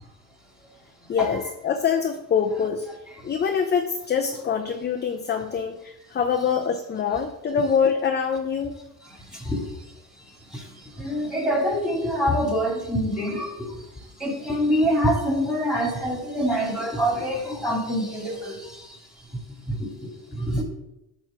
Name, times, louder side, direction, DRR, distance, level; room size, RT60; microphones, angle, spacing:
voice 1, 1.1-2.9 3.2-8.8, left 6 dB, 25° left, 4 dB, 0.5 m, -24 dB
voice 2, 9.1-9.6 10.5-19.0 19.7-20.6, equal, ahead, -1 dB, 2.2 m, -26 dB
8.7 x 3.2 x 6.1 m, 0.87 s
cardioid pair, 115°, 42 cm